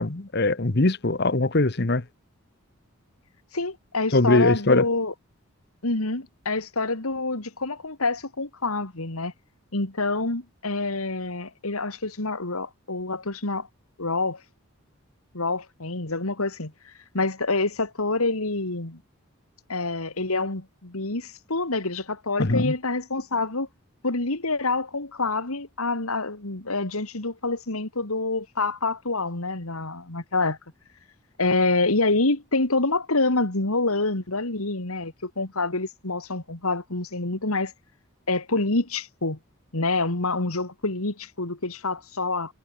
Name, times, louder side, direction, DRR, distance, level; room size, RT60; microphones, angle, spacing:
voice 1, 0.0-2.0 4.1-4.8 22.4-22.7, left 2 dB, 50° left, 1.2 m, -21 dB
voice 2, 3.5-5.1 5.8-9.3 9.7-13.7 14.0-14.4 15.3-19.0 19.7-23.7 24.0-30.6 31.4-37.7 38.3-39.4 39.7-42.5, left 3 dB, 80° left, 2.7 m, -27 dB
head